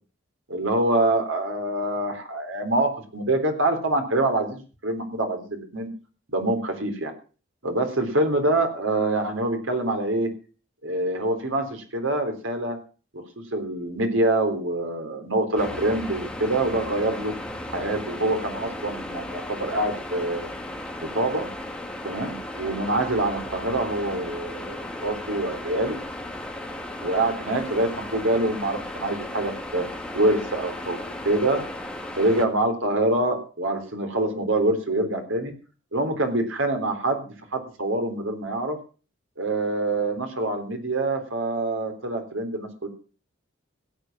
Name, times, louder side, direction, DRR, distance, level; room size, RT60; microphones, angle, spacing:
voice 1, 0.5-5.9 6.3-7.1 7.6-10.3 10.8-12.8 13.1-13.2 13.5-17.3 17.7-20.5 21.0-21.5 22.0-26.0 27.0-29.9 30.1-31.0 31.2-31.6 32.2-35.5 35.9-38.8 39.4-42.9, right 2 dB, 80° right, 5 dB, 3.8 m, -25 dB
sound 1, 15.6-32.5, left 1 dB, 5° left, 1.8 m, -35 dB
16.5 x 8.7 x 7.5 m, 0.38 s
head